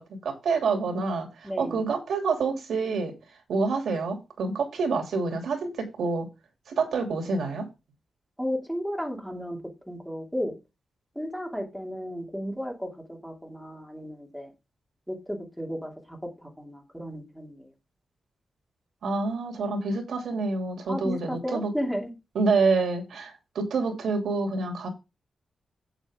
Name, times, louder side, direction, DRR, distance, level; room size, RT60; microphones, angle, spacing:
voice 1, 0.0-3.1 3.5-6.3 6.7-7.7 19.0-21.7 22.3-24.9, right 4 dB, 85° right, 2.8 m, -27 dB
voice 2, 1.4-1.9 8.4-9.6 9.9-10.6 11.2-14.5 15.1-17.7 20.9-22.1, equal, ahead, 2.6 m, -34 dB
8.5 x 7.9 x 3.6 m
wide cardioid pair, 180°, 0 cm